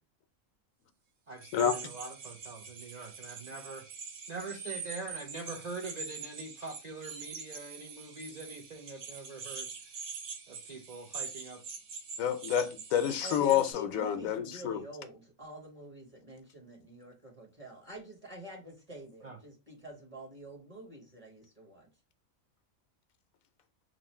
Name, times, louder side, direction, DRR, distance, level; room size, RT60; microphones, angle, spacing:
voice 1, 1.3-3.8 4.3-9.7 10.5-11.6 19.2-19.4, right 3 dB, 60° right, 0.4 m, -43 dB
sound 1, 1.4-13.7, right 5 dB, 80° right, 1.2 m, -44 dB
voice 2, 12.2-14.8, left 9 dB, 80° left, 1.0 m, -28 dB
voice 3, 13.2-21.9, right 1 dB, 25° right, 1.1 m, -47 dB
3.0 x 2.6 x 4.2 m
omnidirectional pair, 1.4 m